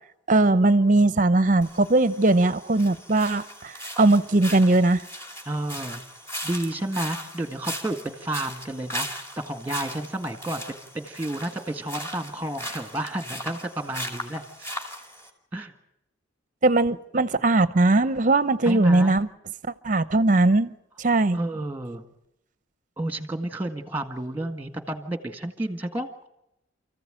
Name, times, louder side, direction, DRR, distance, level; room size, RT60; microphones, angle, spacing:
voice 1, 0.3-5.0 16.6-19.3 19.8-21.4, right 2 dB, 40° right, 15 dB, 0.8 m, -20 dB
sound 1, 1.6-15.3, equal, 15° left, 2.6 m, -38 dB
voice 2, 5.4-6.0 6.4-14.7 15.5-15.7 18.6-19.2 21.3-22.0 23.0-26.3, right 1 dB, 10° right, 8 dB, 1.7 m, -31 dB
28.5 x 15.0 x 9.0 m, 0.83 s
head